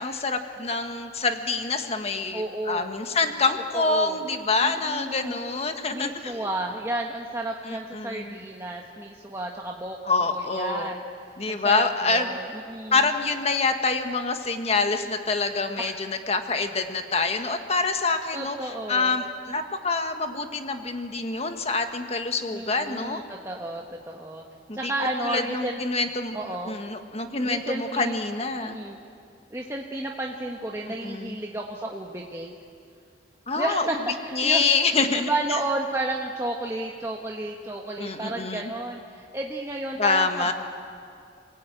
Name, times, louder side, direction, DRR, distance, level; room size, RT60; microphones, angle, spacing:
voice 1, 0.0-6.4 7.6-8.4 10.0-10.9 11.4-12.3 12.9-18.6 18.9-23.2 24.7-24.9 25.2-26.4 26.7-28.8 31.0-31.4 33.5-33.9 34.3-35.3 38.0-38.7 40.0-40.5, left 3 dB, 35° left, 6 dB, 1.6 m, -26 dB
voice 2, 2.3-2.9 3.7-4.2 4.6-5.4 5.9-11.0 11.5-13.0 15.8-16.0 18.3-19.2 22.5-24.4 24.7-25.8 26.3-26.8 27.4-28.2 28.6-29.0 29.5-32.5 33.5-40.5, right 2 dB, 15° right, -1 dB, 1.3 m, -32 dB
28.5 x 18.5 x 9.1 m, 2.4 s
head